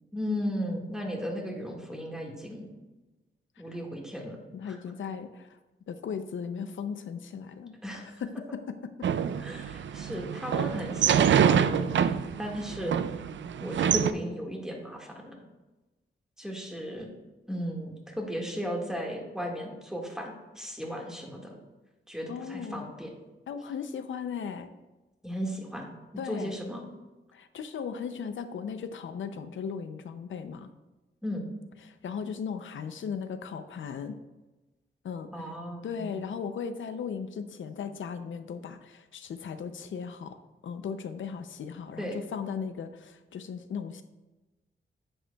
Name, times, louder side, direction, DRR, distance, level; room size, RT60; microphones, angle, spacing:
voice 1, 0.1-2.7 3.6-4.4 4.6-4.8 7.8-8.1 9.4-12.9 13.6-15.4 16.4-17.1 17.5-21.6 22.1-23.1 25.2-25.9 26.3-26.8 31.2-31.5 35.3-36.2 42.0-42.2, equal, 5° right, 0 dB, 1.7 m, -35 dB
voice 2, 4.5-5.6 5.9-9.1 22.3-22.9 23.5-24.7 26.2-26.6 27.3-30.7 31.8-34.1 35.0-35.5 35.8-40.4 40.6-44.0, left 6 dB, 85° left, 9 dB, 0.5 m, -37 dB
sound 1, 9.0-14.1, right 8 dB, 70° right, 0.4 m, -26 dB
9.9 x 7.7 x 2.3 m, 1.1 s
wide cardioid pair, 100°, 20 cm